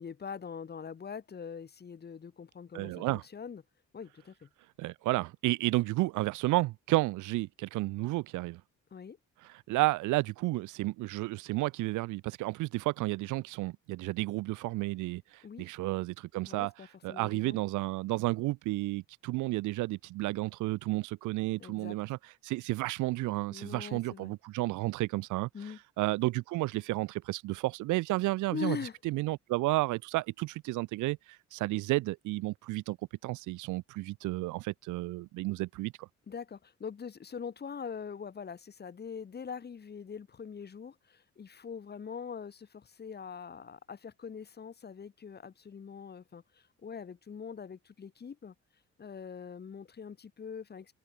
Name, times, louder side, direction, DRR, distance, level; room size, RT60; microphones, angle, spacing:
voice 1, 0.0-3.6 3.9-4.5 8.9-9.2 15.4-15.6 16.5-17.6 21.6-22.0 23.5-24.3 25.5-25.8 28.5-29.0 36.3-48.5 49.0-50.9, left 6 dB, 35° left, 1.1 m, -43 dB
voice 2, 2.7-3.2 4.8-8.6 9.4-16.7 17.0-22.2 22.4-25.5 26.0-28.8 29.0-31.2 31.5-33.0 33.2-36.1, right 19 dB, 85° right, 0.5 m, -32 dB
cardioid pair, 90°, 30 cm